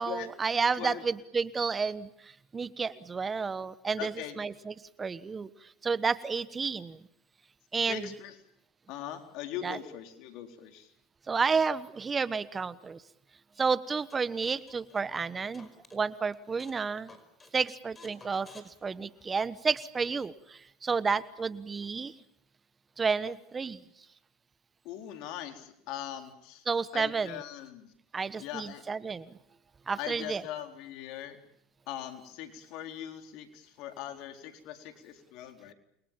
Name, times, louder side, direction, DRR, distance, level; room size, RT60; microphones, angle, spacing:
voice 1, 0.0-7.0 7.7-8.1 9.6-9.8 11.3-13.0 13.6-17.2 17.5-22.1 23.0-23.8 26.7-27.4 28.1-29.3 29.9-30.4, right 5 dB, 25° right, 16 dB, 1.2 m, -31 dB
voice 2, 4.0-4.4 7.8-8.3 8.9-10.9 24.8-26.6 26.9-27.9 28.4-28.8 30.0-31.4 31.9-35.7, left 11 dB, 60° left, 6 dB, 4.0 m, -41 dB
sound 1, 14.1-16.0 16.3-16.8 17.1-17.5 18.0-19.6, left 3 dB, 25° left, 5.4 m, -55 dB
29.5 x 23.5 x 7.5 m, 0.77 s
hypercardioid pair, 80°, 0 cm